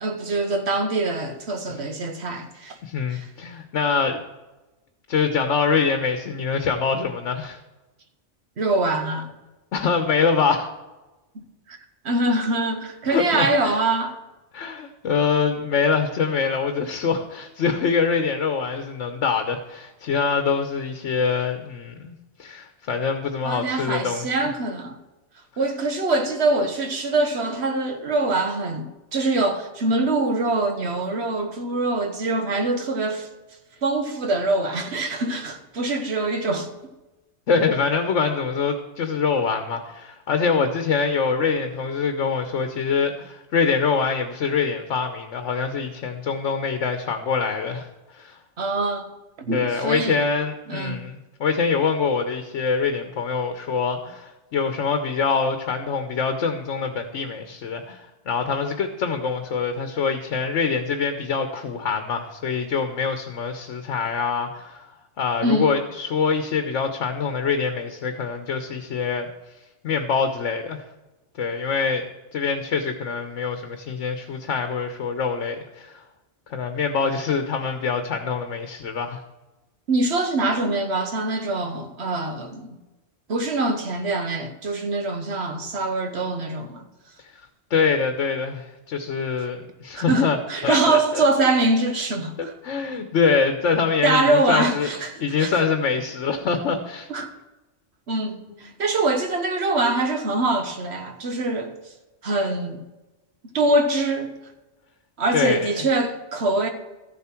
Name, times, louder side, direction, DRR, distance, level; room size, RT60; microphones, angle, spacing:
voice 1, 0.0-2.8 3.1-3.3 8.6-9.3 11.3-11.8 12.0-14.2 23.4-25.0 25.6-33.3 33.8-36.7 48.6-49.1 49.4-50.2 50.7-51.0 65.4-65.7 79.9-82.7 83.3-86.9 89.4-89.5 89.9-92.5 94.0-95.6 97.1-97.3 98.1-101.7 102.2-102.8 103.5-104.4 105.2-106.7, right 2 dB, 65° right, 1.4 m, -24 dB
voice 2, 2.8-4.2 5.1-7.6 9.7-10.7 13.1-13.8 14.5-22.1 22.4-24.3 37.5-48.4 49.5-64.9 65.2-69.3 69.8-70.8 71.4-72.1 72.3-76.0 76.5-79.2 87.3-90.4 90.6-91.3 92.4-94.9 95.2-97.1 98.5-98.6 105.3-105.9, left 5 dB, 85° left, 1.2 m, -24 dB
13.5 x 7.2 x 4.4 m
omnidirectional pair, 1.2 m